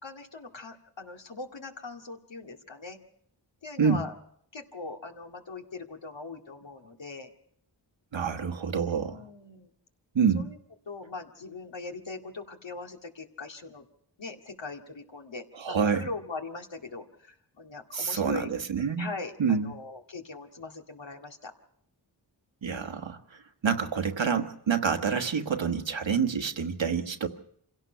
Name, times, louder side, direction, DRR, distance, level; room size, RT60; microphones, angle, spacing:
voice 1, 0.0-3.0 3.6-4.2 4.5-7.3 8.9-9.7 10.3-10.6 10.9-13.8 14.2-18.5 19.0-21.5, left 3 dB, 75° left, 2 dB, 2.3 m, -41 dB
voice 2, 8.1-9.2 10.1-10.5 15.6-16.1 17.9-19.1 19.4-19.7 22.6-23.2 23.6-27.3, right 6 dB, 80° right, 6 dB, 1.5 m, -27 dB
27.0 x 17.0 x 5.7 m, 0.68 s
wide cardioid pair, 70°, 44 cm